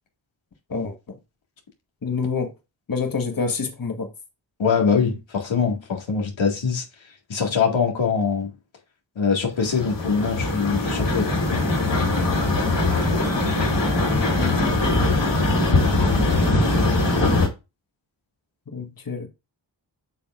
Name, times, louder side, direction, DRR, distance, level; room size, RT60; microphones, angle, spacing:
voice 1, 0.7-1.2 2.0-2.5 2.9-4.1 14.4-14.6 14.9-15.2 18.7-19.3, left 4 dB, 50° left, 1.5 m, -27 dB
voice 2, 4.6-6.8 7.3-8.5 9.2-11.3, left 5 dB, 90° left, 2.0 m, -23 dB
sound 1, 9.6-17.5, left 2 dB, 70° left, 3.0 m, -21 dB
8.5 x 5.6 x 2.5 m
cardioid pair, 55°, 44 cm